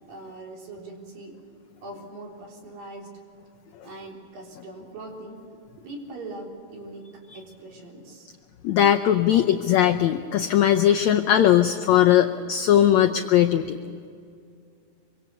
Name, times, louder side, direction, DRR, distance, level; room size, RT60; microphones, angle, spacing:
voice 1, 0.1-1.4 1.8-3.1 3.8-8.3 12.1-12.3 13.6-13.7, right 2 dB, 70° right, 0 dB, 5.3 m, -41 dB
voice 2, 8.6-13.8, left 11 dB, 85° left, 6 dB, 1.6 m, -19 dB
25.5 x 25.0 x 6.8 m, 2.4 s
omnidirectional pair, 4.2 m